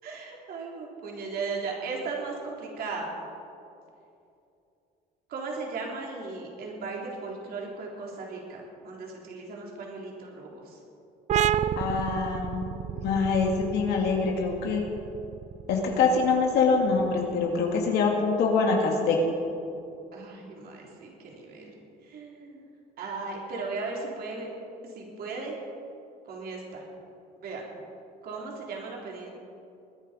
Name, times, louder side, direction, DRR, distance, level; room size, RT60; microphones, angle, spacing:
voice 1, 0.0-3.1 5.3-10.8 20.1-21.7 22.0-22.6 23.0-24.5 24.8-25.6 26.3-26.8 27.4-27.7 28.2-29.3, right 4 dB, 65° right, -1 dB, 3.7 m, -37 dB
sound 1, 11.3-18.6, right 10 dB, 45° right, 0.4 m, -32 dB
voice 2, 11.8-14.8 15.7-19.2, left 4 dB, 80° left, 0 dB, 2.2 m, -25 dB
21.0 x 10.5 x 5.2 m, 2.6 s
cardioid pair, 110°, 17 cm